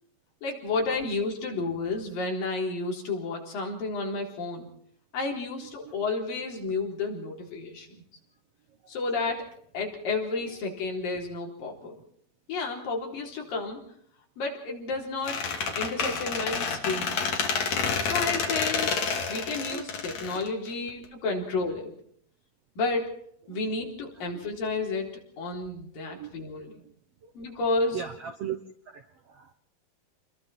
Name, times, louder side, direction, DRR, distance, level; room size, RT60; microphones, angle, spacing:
voice 1, 0.4-4.7 5.1-7.9 8.9-9.5 9.7-12.0 12.5-13.8 14.4-17.2 18.0-22.0 22.8-23.1 23.5-25.1 25.4-26.7 27.4-28.0, left 3 dB, 75° left, 0 dB, 5.7 m, -31 dB
Squeak, 15.3-21.1, left 5 dB, 55° left, 3.6 m, -29 dB
voice 2, 24.2-24.5 26.1-26.3 26.8-26.9 27.2-27.3 27.9-28.6 28.9-29.5, right 8 dB, 65° right, 7 dB, 1.5 m, -39 dB
29.5 x 21.5 x 4.4 m, 0.63 s
omnidirectional pair, 4.0 m